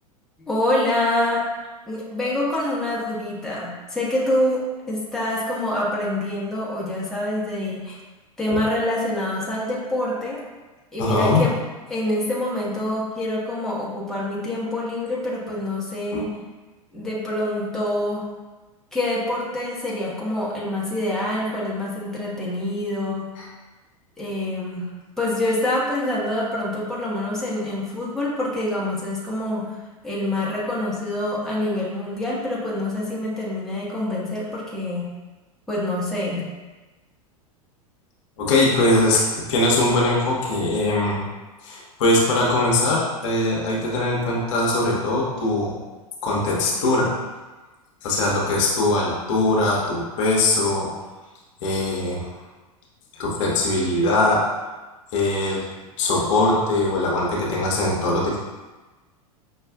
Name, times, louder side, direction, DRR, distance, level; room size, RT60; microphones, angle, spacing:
voice 1, 0.4-1.5 1.9-8.0 8.4-10.4 10.9-11.5 11.9-16.3 16.9-18.3 18.9-23.3 24.2-29.7 30.0-35.1 35.7-36.5, left 1 dB, ahead, -7 dB, 1.0 m, -26 dB
voice 2, 11.0-11.5 16.1-16.2 23.4-23.5 38.4-41.2 41.6-45.8 46.2-47.2 48.0-50.9 51.6-52.3 53.1-54.4 55.1-55.7 56.0-58.4, left 2 dB, 55° left, -4 dB, 0.9 m, -21 dB
5.6 x 2.3 x 2.4 m, 1.2 s
figure-of-eight pair, 90°, 19 cm